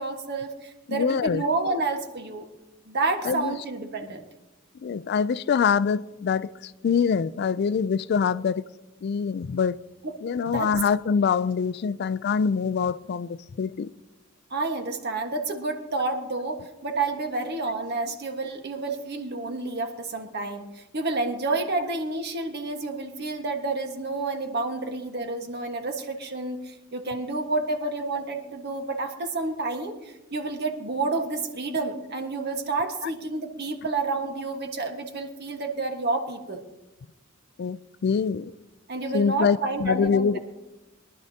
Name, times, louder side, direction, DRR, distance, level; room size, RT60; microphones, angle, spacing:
voice 1, 0.0-2.5 2.9-4.2 10.4-10.7 14.5-36.6 38.9-40.4, right 3 dB, 55° right, 1.5 m, -29 dB
voice 2, 0.9-1.4 3.2-3.5 4.8-8.7 9.0-9.8 10.2-13.9 37.6-38.5 39.1-40.4, left 6 dB, 55° left, 0.4 m, -25 dB
22.5 x 11.5 x 2.8 m
head